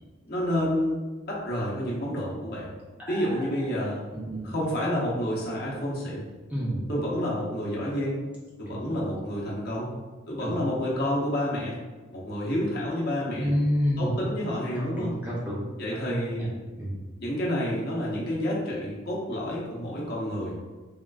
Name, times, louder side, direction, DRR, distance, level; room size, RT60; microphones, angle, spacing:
voice 1, 0.3-1.0 1.3-2.7 3.1-4.1 4.4-6.3 6.9-8.2 8.6-9.9 10.3-11.8 12.1-13.5 14.0-15.1 15.8-16.4 17.2-20.6, equal, 50° left, -5 dB, 0.7 m, -29 dB
voice 2, 3.0-3.5 4.1-4.5 6.5-6.8 8.7-8.8 10.4-10.5 13.4-14.2 14.7-15.7 16.2-16.5 16.8-17.0, equal, 5° right, -6 dB, 0.5 m, -29 dB
3.5 x 2.4 x 2.3 m, 1.3 s
head